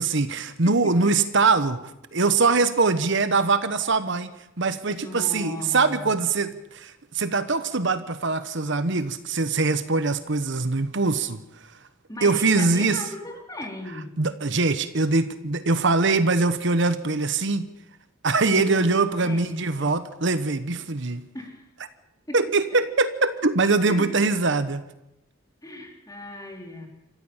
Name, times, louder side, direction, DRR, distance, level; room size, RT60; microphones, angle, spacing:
voice 1, 0.0-1.8 2.1-4.3 4.6-11.7 12.2-13.0 13.9-17.7 18.2-21.2 22.3-24.8, right 3 dB, 60° right, 12 dB, 1.1 m, -23 dB
voice 2, 4.9-6.1 12.1-14.1 18.4-19.9 21.3-21.6 22.3-22.4 23.9-24.1 25.6-26.9, left 1 dB, 20° left, 2 dB, 3.9 m, -37 dB
27.0 x 14.5 x 7.3 m, 0.89 s
head